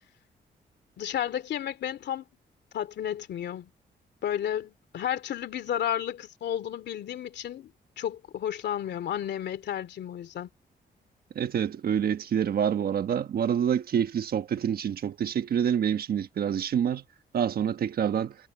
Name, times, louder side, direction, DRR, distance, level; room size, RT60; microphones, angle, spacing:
voice 1, 1.0-2.2 2.7-3.7 4.2-10.5, left 10 dB, 80° left, 2.6 m, -32 dB
voice 2, 11.3-17.0 17.3-18.4, right 8 dB, 60° right, 1.3 m, -27 dB
wide cardioid pair, 145°, 17 cm